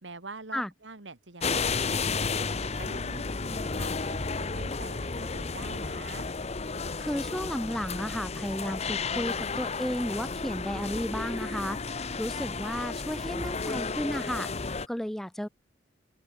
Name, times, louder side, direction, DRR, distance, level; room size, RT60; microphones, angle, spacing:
voice 1, 0.0-2.3 2.6-6.3, right 3 dB, 85° right, 2.4 m, -45 dB
sound 1, 1.4-14.9, left 4 dB, 35° left, 0.9 m, -32 dB
voice 2, 7.0-15.5, equal, ahead, 0.3 m, -33 dB
open air
head